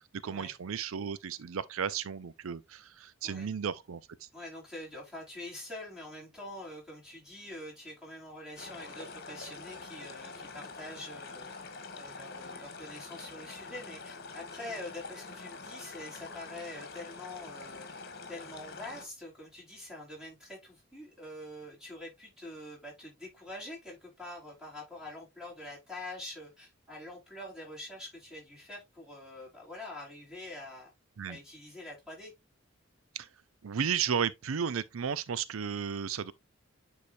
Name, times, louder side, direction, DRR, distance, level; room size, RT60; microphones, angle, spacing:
voice 1, 0.2-4.3 31.2-31.4 33.1-33.3 33.6-36.3, right 7 dB, 80° right, 0.5 m, -34 dB
voice 2, 4.3-11.5 11.9-17.9 18.3-30.9 31.3-32.3, left 1 dB, 5° right, 4.6 m, -45 dB
sound 1, 8.6-19.1, left 4 dB, 50° left, 1.6 m, -45 dB
9.6 x 4.9 x 2.6 m
head